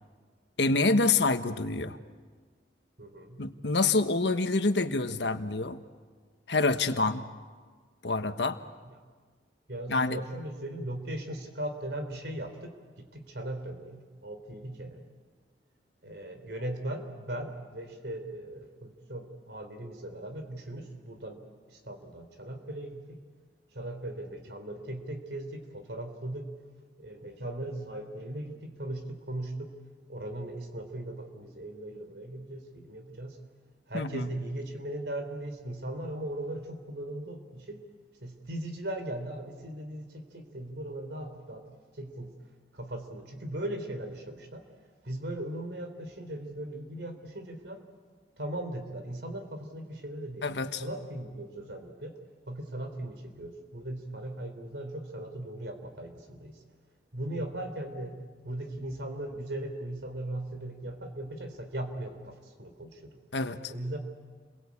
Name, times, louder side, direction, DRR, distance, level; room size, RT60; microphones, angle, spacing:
voice 1, 0.6-2.0 3.4-5.8 6.5-7.3 8.0-8.6 9.9-10.2 33.9-34.3 50.4-50.8 63.3-63.6, left 3 dB, 80° left, 9 dB, 1.3 m, -27 dB
voice 2, 3.0-3.4 8.8-8.9 9.7-15.0 16.0-21.4 21.7-23.2 23.7-26.5 27.0-29.7 30.1-33.4 33.9-37.8 38.2-41.7 41.9-42.4 42.7-44.7 45.0-47.8 48.4-52.2 52.5-56.6 57.1-58.2 58.4-63.2 63.7-64.0, right 1 dB, 75° right, 6 dB, 3.7 m, -38 dB
30.0 x 22.5 x 8.6 m, 1.5 s
head